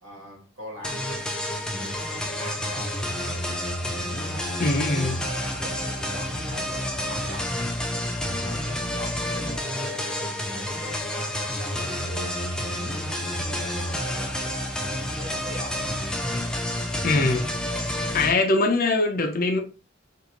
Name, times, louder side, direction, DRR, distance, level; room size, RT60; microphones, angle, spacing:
voice 1, 0.0-1.2 1.6-3.7 4.1-4.8 5.3-7.6 8.1-15.9, equal, 80° right, 1.7 m, -42 dB
sound 1, 0.8-18.3, left 1 dB, 5° left, 0.4 m, -29 dB
voice 2, 4.6-5.2 17.0-17.5 18.1-19.6, left 2 dB, 45° left, 0.6 m, -22 dB
3.8 x 2.6 x 2.9 m
head